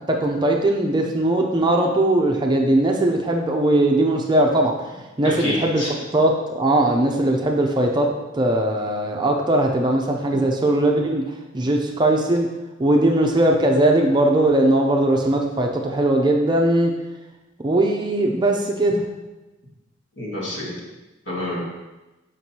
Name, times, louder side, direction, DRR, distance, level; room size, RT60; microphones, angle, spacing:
voice 1, 0.1-4.7 5.2-5.8 6.1-8.1 8.3-11.2 11.5-12.5 12.8-16.9 17.6-19.0, right 1 dB, 20° right, 1 dB, 0.5 m, -19 dB
voice 2, 5.2-5.9 20.2-20.8 21.3-21.6, left 1 dB, 60° left, -5 dB, 2.0 m, -28 dB
7.6 x 5.2 x 2.8 m, 1.1 s
head